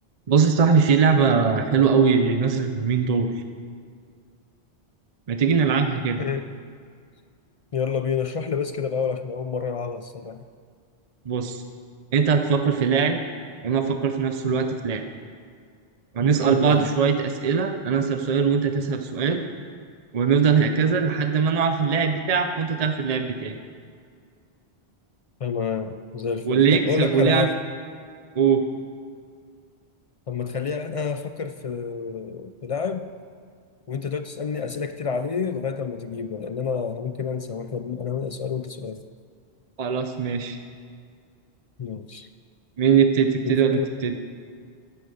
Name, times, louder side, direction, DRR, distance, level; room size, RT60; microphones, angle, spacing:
voice 1, 0.3-3.4 5.3-6.2 11.3-11.6 12.1-13.2 13.6-15.1 16.1-19.4 20.1-23.5 26.4-27.5 28.4-28.6 39.8-40.6 42.8-44.2, right 6 dB, 40° right, 6 dB, 0.7 m, -21 dB
voice 2, 6.2-6.5 7.7-10.4 16.4-16.9 25.4-27.5 30.3-33.1 33.9-39.0 41.8-42.3 43.4-43.9, left 6 dB, 55° left, 10 dB, 0.3 m, -28 dB
11.5 x 10.0 x 7.0 m, 2.1 s
omnidirectional pair, 1.1 m